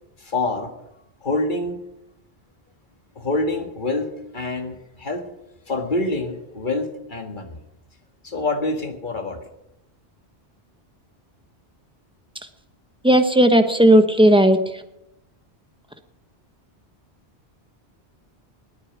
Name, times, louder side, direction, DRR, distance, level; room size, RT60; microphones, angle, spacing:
voice 1, 0.2-0.7 1.2-1.8 3.1-5.3 5.7-7.6 8.2-9.5, left 2 dB, 50° left, 5 dB, 1.8 m, -26 dB
voice 2, 13.0-14.6, right 1 dB, 5° right, 7 dB, 1.0 m, -14 dB
19.5 x 8.6 x 6.1 m, 0.86 s
omnidirectional pair, 1.1 m